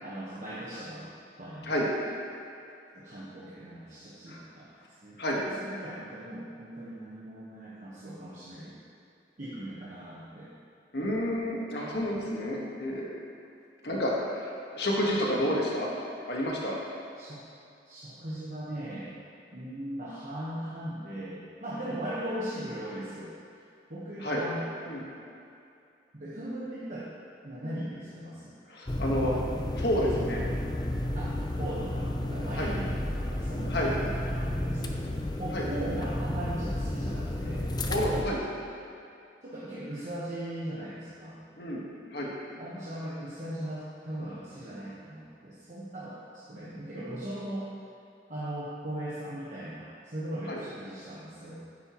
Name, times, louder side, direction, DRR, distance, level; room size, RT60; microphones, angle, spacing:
voice 1, 0.0-1.1 1.4-1.8 2.9-4.7 5.0-5.2 5.5-8.8 9.4-10.5 15.4-15.6 17.2-17.4 17.8-19.1 19.5-23.3 23.9-24.7 26.1-27.1 27.4-28.5 31.1-35.1 35.4-37.7 39.4-41.4 42.6-47.7 48.3-51.6, right 1 dB, 45° right, -9 dB, 1.2 m, -39 dB
voice 2, 10.9-13.1 13.8-15.9 16.3-16.8 24.2-24.4 24.9-25.0 28.7-29.3 29.7-30.4 32.5-32.7 33.7-33.9 35.5-35.7 37.9-38.4 41.6-41.8 42.1-42.3 50.5-50.6, equal, 65° left, -3 dB, 1.5 m, -30 dB
sound 1, 28.9-38.2, left 1 dB, 25° left, 0.5 m, -32 dB
9.9 x 8.4 x 3.1 m, 2.5 s
head